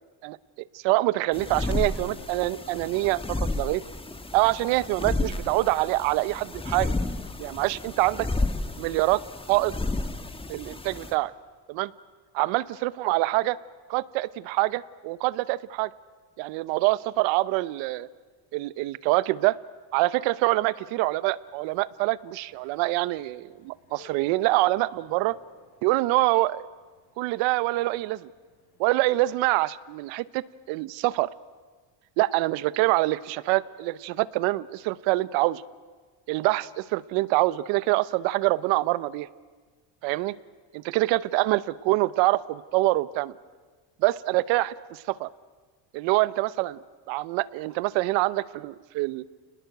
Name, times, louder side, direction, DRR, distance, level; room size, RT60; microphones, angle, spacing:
voice 1, 0.2-3.8 4.3-6.9 7.4-8.3 8.8-9.2 9.5-9.8 10.5-11.3 11.7-11.9 12.3-13.6 13.9-15.9 16.4-18.1 18.5-19.6 19.9-25.4 25.8-26.7 27.2-28.3 28.8-31.3 32.2-35.6 36.3-39.3 40.0-40.4 40.7-43.4 44.0-45.3 45.9-46.8 47.1-49.2, right 19 dB, 90° right, 19 dB, 0.8 m, -25 dB
sound 1, 1.3-11.1, left 2 dB, 10° left, 1.5 m, -32 dB
sound 2, 21.4-29.7, left 2 dB, 90° left, 6.5 m, -57 dB
29.0 x 20.0 x 7.9 m, 1.4 s
cardioid pair, 125°, 44 cm